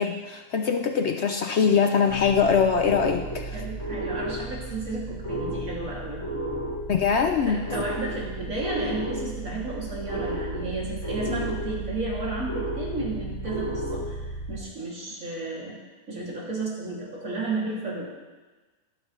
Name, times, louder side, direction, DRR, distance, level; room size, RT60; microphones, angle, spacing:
voice 1, 0.0-3.5 6.9-7.6, left 6 dB, 60° left, 5 dB, 0.8 m, -22 dB
sound 1, 2.1-14.6, right 1 dB, 20° left, 4.1 m, -33 dB
voice 2, 3.5-6.2 7.4-15.8 16.1-18.1, right 2 dB, 65° right, -4 dB, 3.2 m, -33 dB
15.0 x 11.5 x 3.2 m, 1.3 s
omnidirectional pair, 1.5 m